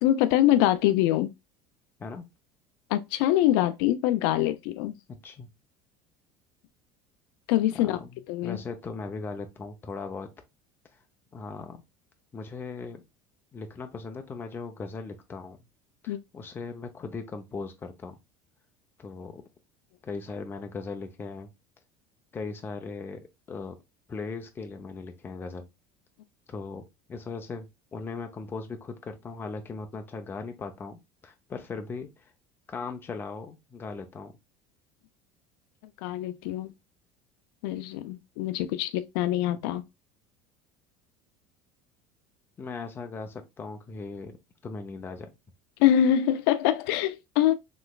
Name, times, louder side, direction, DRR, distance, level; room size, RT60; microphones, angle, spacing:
voice 1, 0.0-1.3 2.9-4.9 7.5-8.0 8.3-8.6 16.1-16.2 36.0-36.7 37.6-39.8 45.8-47.5, left 12 dB, 80° left, 0.4 m, -24 dB
voice 2, 5.1-5.5 7.7-10.3 11.3-11.8 12.3-13.0 13.5-15.6 16.0-18.2 19.0-19.4 20.0-21.5 22.3-23.8 24.1-25.6 26.5-26.8 27.1-27.7 27.9-32.3 32.7-34.3 39.5-39.7 42.6-44.4 44.6-45.3, left 4 dB, 20° left, 0.5 m, -38 dB
3.1 x 3.0 x 2.3 m
cardioid pair, 140°, 11 cm